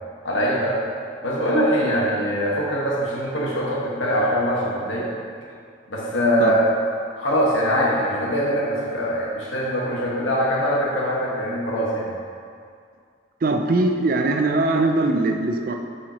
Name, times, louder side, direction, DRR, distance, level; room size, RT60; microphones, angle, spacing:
voice 1, 0.2-0.8 1.2-5.1 5.9-6.6 7.1-12.1, equal, 80° left, -5 dB, 1.4 m, -22 dB
voice 2, 13.4-15.7, right 2 dB, 45° right, 4 dB, 0.4 m, -21 dB
8.4 x 4.9 x 2.9 m, 2.2 s
head